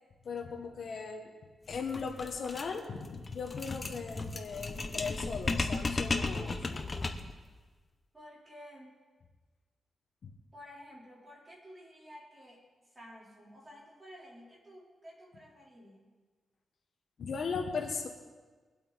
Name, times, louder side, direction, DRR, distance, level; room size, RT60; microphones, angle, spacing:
voice 1, 0.2-1.3 1.7-6.8 17.2-18.1, left 5 dB, 55° left, 2 dB, 1.5 m, -38 dB
sound 1, 1.7-7.4, left 3 dB, 30° left, 0.9 m, -35 dB
voice 2, 8.1-8.9 10.5-16.1, equal, 20° right, -4 dB, 3.9 m, -52 dB
22.5 x 8.2 x 4.2 m, 1.4 s
wide cardioid pair, 140°, 0 cm